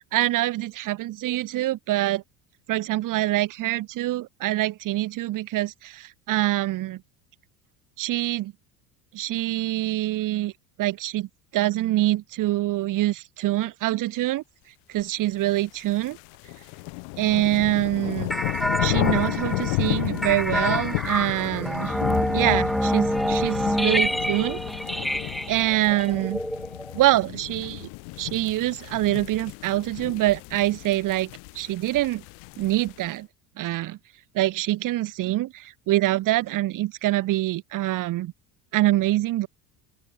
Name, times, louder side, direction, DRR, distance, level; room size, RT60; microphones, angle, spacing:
voice 1, 0.1-2.2 2.7-7.0 8.0-8.5 9.1-10.5 10.8-14.4 14.9-16.2 17.2-18.3 18.8-22.0 22.3-24.6 24.9-25.1 25.5-26.4 26.9-27.9 28.2-32.2 32.6-33.3 33.6-34.0 34.3-38.3 38.7-39.5, right 16 dB, 40° right, 0.7 m, -25 dB
sound 1, 15.6-33.1, left 36 dB, 65° left, 0.8 m, -32 dB
sound 2, 18.3-27.2, equal, ahead, 0.8 m, -27 dB
open air
hypercardioid pair, 75°, 49 cm